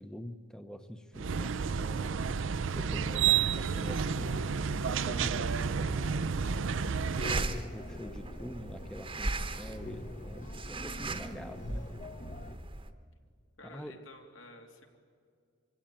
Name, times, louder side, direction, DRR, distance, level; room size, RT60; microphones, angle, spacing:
voice 1, 0.0-2.4 2.7-6.4 7.2-11.9 13.6-14.0, equal, 5° left, 8 dB, 0.7 m, -45 dB
sound 1, 1.1-7.4, right 6 dB, 70° right, 0.5 m, -30 dB
sound 2, 2.8-12.6, left 2 dB, 40° left, 1.0 m, -46 dB
sound 3, 6.4-12.9, right 2 dB, 25° right, 1.0 m, -39 dB
voice 2, 13.6-15.0, left 2 dB, 75° left, 3 dB, 2.9 m, -52 dB
24.5 x 16.5 x 9.0 m, 2.2 s
head